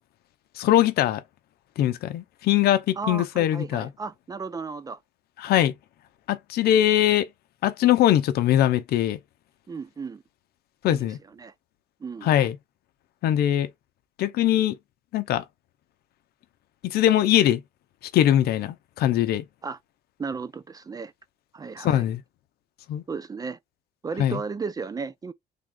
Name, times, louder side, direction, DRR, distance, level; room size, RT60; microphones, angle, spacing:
voice 1, 0.6-1.2 1.8-3.9 5.4-5.7 6.3-7.3 7.6-9.2 10.8-11.2 12.2-12.6 13.2-13.7 14.2-14.8 15.1-15.4 16.8-17.6 18.1-19.5 21.8-22.2 22.9-23.0 24.2-24.4, left 12 dB, 70° left, 0.6 m, -21 dB
voice 2, 3.0-5.0 9.7-10.2 10.8-11.0 11.3-11.5 12.0-12.3 19.6-19.8 20.2-21.1 21.5-22.1 23.1-23.6 24.0-25.3, right 5 dB, 20° right, 0.4 m, -34 dB
3.5 x 2.4 x 3.6 m
cardioid pair, 110°, 17 cm